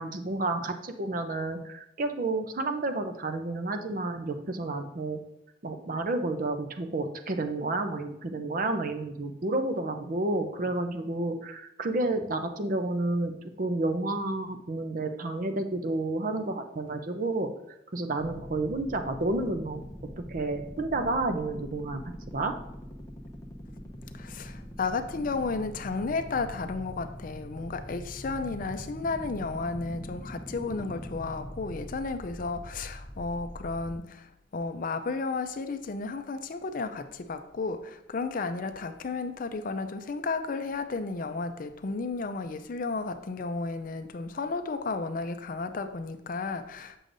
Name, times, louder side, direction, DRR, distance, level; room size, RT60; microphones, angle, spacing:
voice 1, 0.0-5.2 5.6-13.3 13.6-17.5 17.9-19.8 20.3-22.0 22.3-22.6, right 2 dB, 45° right, 0.6 m, -30 dB
sound 1, 18.2-34.0, equal, 15° left, 0.8 m, -43 dB
voice 2, 24.1-47.0, left 3 dB, 45° left, 0.4 m, -33 dB
7.7 x 6.3 x 2.6 m
head